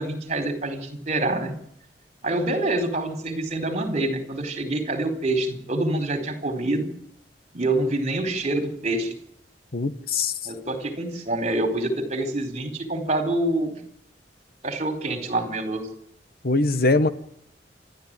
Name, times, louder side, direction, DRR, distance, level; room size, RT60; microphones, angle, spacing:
voice 1, 0.0-1.6 2.2-6.9 7.5-9.2 10.4-13.8 14.6-15.9, right 2 dB, 40° right, 7 dB, 4.4 m, -26 dB
voice 2, 9.7-10.3 16.4-17.1, left 3 dB, 55° left, 12 dB, 1.2 m, -21 dB
29.0 x 13.0 x 9.1 m, 0.73 s
head